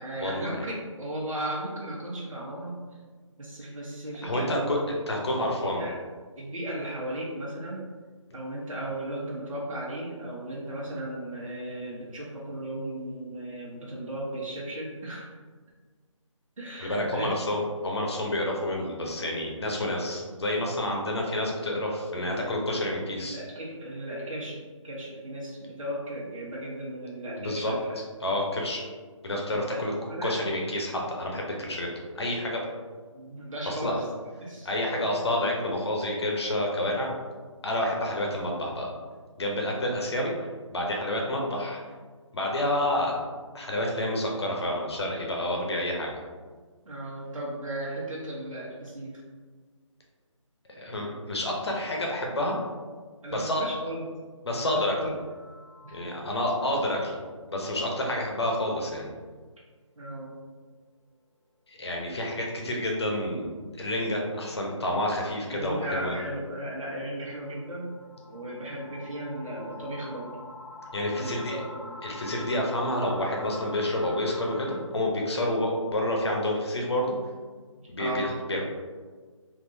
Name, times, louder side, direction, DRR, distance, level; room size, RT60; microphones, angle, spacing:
voice 1, 0.0-2.8 3.4-4.8 5.4-5.9 6.4-7.9 8.3-15.3 16.6-17.3 23.2-27.9 29.5-30.3 33.1-34.0 34.4-35.1 39.8-39.9 46.8-49.2 53.2-54.0 54.5-55.1 55.8-56.0 60.0-60.4 65.5-67.9 68.3-70.4 71.1-72.0 78.0-78.3, right 1 dB, 80° right, -6 dB, 1.2 m, -36 dB
voice 2, 4.2-4.8 5.1-5.8 16.8-23.4 27.4-27.7 28.2-28.8 29.2-29.9 30.2-32.6 33.7-34.0 34.6-37.1 37.6-38.9 39.4-40.3 40.7-41.8 42.3-43.2 43.5-46.2 50.8-52.6 53.3-53.6 54.4-54.9 55.9-57.2 57.5-59.1 61.7-66.1 70.9-71.6 72.0-77.1 77.9-78.6, left 1 dB, 55° left, -1 dB, 0.8 m, -29 dB
sound 1, 55.1-56.6 57.0-57.1 57.5-57.6 58.0-58.1 63.0-74.8, left 2 dB, ahead, 1.1 m, -46 dB
3.6 x 2.7 x 2.6 m, 1.5 s
figure-of-eight pair, 170°, 17 cm